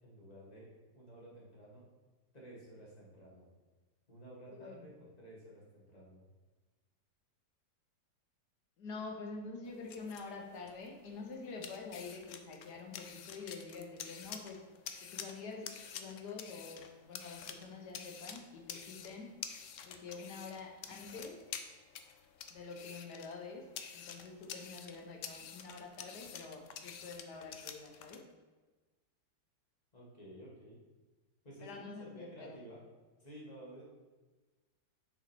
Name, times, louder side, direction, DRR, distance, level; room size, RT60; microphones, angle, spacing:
voice 1, 0.0-1.9 2.3-3.5 4.1-6.2 29.9-30.8 31.4-32.8 33.2-33.9, right 1 dB, 20° left, -5 dB, 1.9 m, -53 dB
voice 2, 4.5-4.9 8.8-14.6 15.0-19.3 19.8-21.4 22.5-23.7 23.9-28.2 31.6-32.6, left 4 dB, 65° left, 2 dB, 1.5 m, -47 dB
sound 1, 9.6-28.2, left 7 dB, 85° left, 0.6 m, -49 dB
6.7 x 4.9 x 4.5 m, 1.3 s
omnidirectional pair, 2.0 m